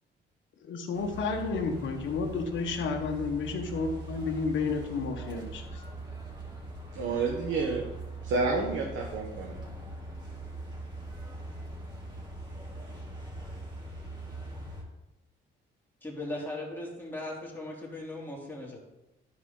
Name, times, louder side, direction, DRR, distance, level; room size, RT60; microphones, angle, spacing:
voice 1, 0.7-5.6, left 4 dB, 75° left, 4 dB, 1.3 m, -31 dB
sound 1, 0.9-14.8, right 2 dB, 20° right, 2.8 m, -41 dB
voice 2, 6.9-7.8 8.2-9.6, right 3 dB, 75° right, 0 dB, 1.3 m, -29 dB
voice 3, 16.0-18.8, left 1 dB, 10° left, -4 dB, 3.0 m, -38 dB
12.0 x 4.9 x 4.0 m, 0.98 s
cardioid pair, 90°, 20 cm